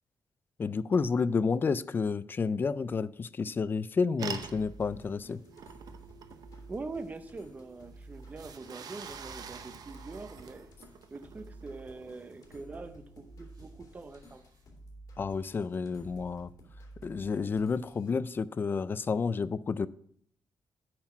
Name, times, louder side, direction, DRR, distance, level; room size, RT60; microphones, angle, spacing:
voice 1, 0.6-5.4 15.2-16.5 17.0-19.9, left 5 dB, 30° left, 0.3 m, -30 dB
sound 1, 4.2-12.6, right 6 dB, 65° right, 0.8 m, -46 dB
sound 2, 4.4-18.1, right 1 dB, 55° left, 2.5 m, -52 dB
sound 3, 5.4-14.7, right 9 dB, 90° right, 2.4 m, -62 dB
voice 2, 6.7-10.7 11.1-14.5, right 3 dB, 25° right, 0.5 m, -43 dB
8.6 x 5.8 x 5.8 m
wide cardioid pair, 160°, 7 cm